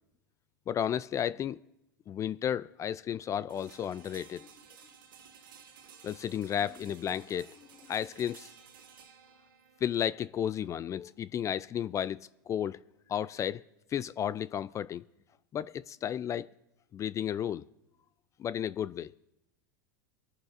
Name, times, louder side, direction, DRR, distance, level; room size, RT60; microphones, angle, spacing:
voice 1, 0.7-1.6 2.1-4.5 6.0-7.6 7.9-8.5 9.8-12.8 13.1-13.6 13.9-15.0 15.5-16.5 16.9-17.7 18.4-19.1, left 9 dB, 30° left, 0.4 m, -33 dB
sound 1, 3.5-13.4, right 7 dB, 85° right, 1.7 m, -56 dB
27.0 x 10.5 x 2.6 m
hypercardioid pair, 105°, 11 cm